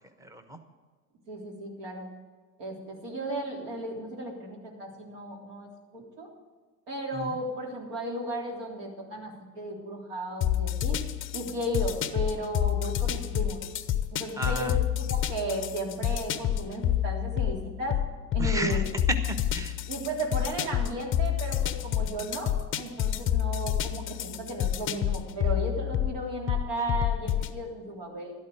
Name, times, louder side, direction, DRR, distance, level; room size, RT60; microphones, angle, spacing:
voice 1, 0.2-0.6 7.1-7.4 14.4-14.8 18.4-18.8 19.1-19.8, right 2 dB, 5° right, 7 dB, 1.2 m, -33 dB
voice 2, 1.3-2.1 2.6-6.3 6.9-11.0 11.3-13.6 14.1-18.9 19.9-28.3, right 1 dB, 55° right, 0 dB, 3.5 m, -35 dB
sound 1, 10.4-27.6, left 11 dB, 25° left, 0.7 m, -29 dB
12.5 x 12.0 x 4.9 m, 1.5 s
figure-of-eight pair, 80°, 49 cm